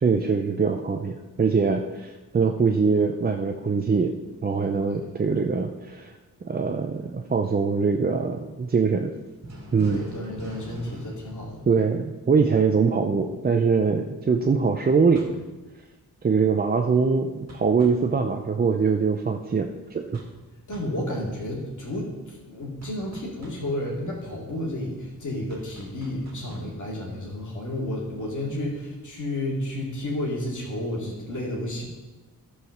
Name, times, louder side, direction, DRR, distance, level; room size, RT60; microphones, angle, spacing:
voice 1, 0.0-4.1 4.4-6.1 6.4-9.1 9.7-10.0 11.7-15.4 16.2-20.2, right 5 dB, 30° right, 4 dB, 0.4 m, -23 dB
voice 2, 4.7-5.1 9.8-11.6 20.7-31.8, left 1 dB, 55° left, -3 dB, 2.3 m, -31 dB
sound 1, 9.4-12.3 15.2-15.5 17.5-18.1 20.1-20.4 20.7-21.0 22.8-23.7 25.5-26.8, right 1 dB, 45° right, 2.2 m, -44 dB
12.5 x 4.8 x 6.4 m, 1.2 s
wide cardioid pair, 175°, 35 cm